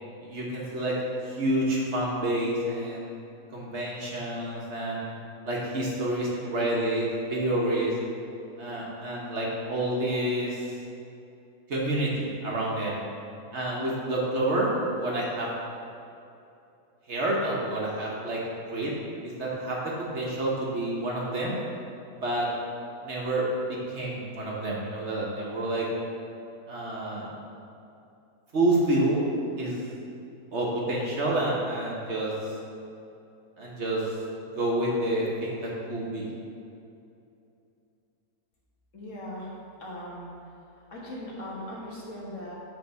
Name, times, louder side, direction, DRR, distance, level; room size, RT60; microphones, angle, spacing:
voice 1, 0.2-0.9 1.2-3.1 3.5-5.1 5.4-7.9 8.6-10.8 11.7-13.0 13.5-15.5 17.1-18.9 19.2-21.6 22.1-22.5 23.0-25.9 26.7-27.3 28.5-29.2 29.6-29.8 30.5-32.3 33.6-34.0 34.5-36.3, right 1 dB, 55° right, -4 dB, 1.4 m, -28 dB
voice 2, 38.9-39.5 39.8-40.3 40.7-42.5, left 1 dB, 60° left, -5 dB, 1.7 m, -39 dB
8.3 x 3.8 x 5.5 m, 2.7 s
omnidirectional pair, 1.5 m